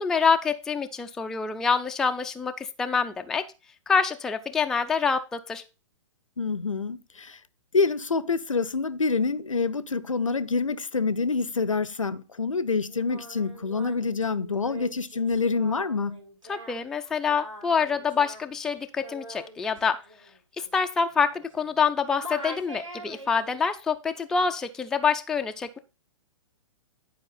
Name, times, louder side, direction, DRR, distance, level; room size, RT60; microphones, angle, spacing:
voice 1, 0.0-3.4 3.9-5.6 16.5-20.0 20.6-25.8, left 5 dB, 5° left, 0.3 m, -26 dB
voice 2, 6.4-7.4 7.7-16.2, left 4 dB, 80° left, 0.6 m, -27 dB
Singing, 12.9-21.9 22.2-23.6, equal, 80° right, 2.8 m, -44 dB
10.5 x 4.7 x 4.0 m
figure-of-eight pair, 115°, 16 cm